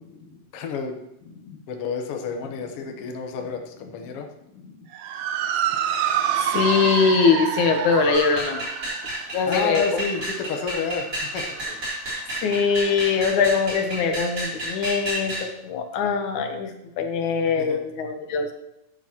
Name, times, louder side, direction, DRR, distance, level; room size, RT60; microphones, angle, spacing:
voice 1, 0.5-1.0 1.7-4.3 9.5-11.8 17.6-17.8, left 5 dB, 60° left, 3 dB, 1.8 m, -30 dB
Motor vehicle (road) / Siren, 4.9-13.5, right 9 dB, 75° right, 1.8 m, -29 dB
voice 2, 6.5-8.6 9.3-9.9 12.4-15.4 15.6-16.7 17.0-18.5, left 5 dB, 80° left, 5 dB, 2.4 m, -22 dB
sound 1, 8.1-15.5, right 1 dB, 25° right, 4.9 m, -31 dB
12.0 x 9.7 x 3.0 m, 0.81 s
omnidirectional pair, 3.4 m